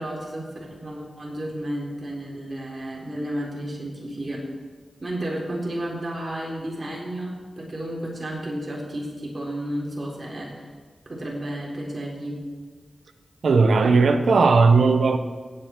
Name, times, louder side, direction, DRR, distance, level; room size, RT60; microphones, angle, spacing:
voice 1, 0.0-4.4 5.0-10.7 11.1-12.4, right 1 dB, 40° right, -3 dB, 3.9 m, -32 dB
voice 2, 13.4-15.2, right 4 dB, 80° right, 8 dB, 0.9 m, -17 dB
17.5 x 8.5 x 4.6 m, 1.5 s
cardioid pair, 55°, 0 cm